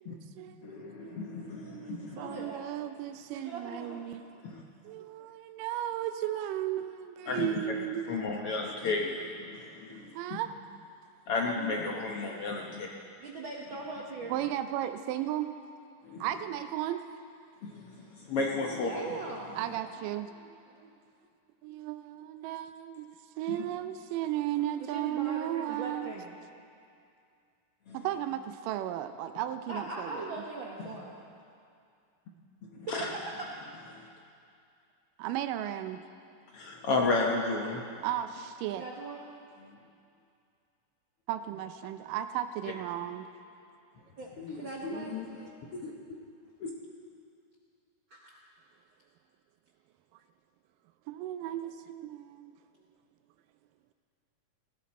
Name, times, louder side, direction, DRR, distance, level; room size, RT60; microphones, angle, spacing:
voice 1, 0.0-4.2 4.8-8.1 9.9-10.5 14.3-15.5 16.2-17.0 19.6-20.3 21.6-23.1 23.4-26.1 27.9-30.3 35.2-36.0 38.0-38.8 41.3-43.3 51.1-52.5, right 12 dB, 90° right, 9 dB, 2.3 m, -35 dB
voice 2, 0.6-2.4 4.4-4.6 7.3-7.6 8.1-10.4 11.3-12.9 16.0-16.3 17.6-18.0 18.3-19.0 23.5-23.6 27.9-28.0 32.7-33.1 33.9-34.1 36.5-37.9 39.6-39.7 44.4-45.3 45.7-45.9 46.6-46.7, left 3 dB, 65° left, -1 dB, 1.5 m, -33 dB
voice 3, 2.1-2.6 3.3-4.0 11.6-12.1 13.2-14.3 18.8-19.6 20.3-20.9 24.9-26.4 29.7-31.1 32.9-33.0 38.8-39.3 44.2-45.2 48.1-48.4, right 3 dB, 70° right, -2 dB, 1.1 m, -41 dB
18.5 x 15.5 x 4.2 m, 2.4 s
omnidirectional pair, 3.8 m